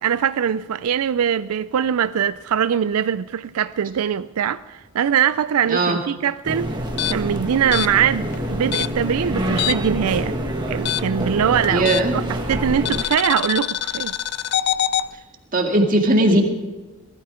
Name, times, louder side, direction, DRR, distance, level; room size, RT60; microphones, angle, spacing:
voice 1, 0.0-6.7 7.1-10.4 10.7-14.1, right 8 dB, 85° right, 0.4 m, -22 dB
voice 2, 5.7-6.0 11.7-12.2 15.5-16.4, right 1 dB, 40° right, 2.1 m, -18 dB
sound 1, 6.4-13.0, equal, 20° right, 1.6 m, -26 dB
sound 2, 6.9-10.0 10.3-12.3 12.9-15.1, left 11 dB, 50° left, 0.5 m, -25 dB
19.0 x 13.0 x 5.0 m
head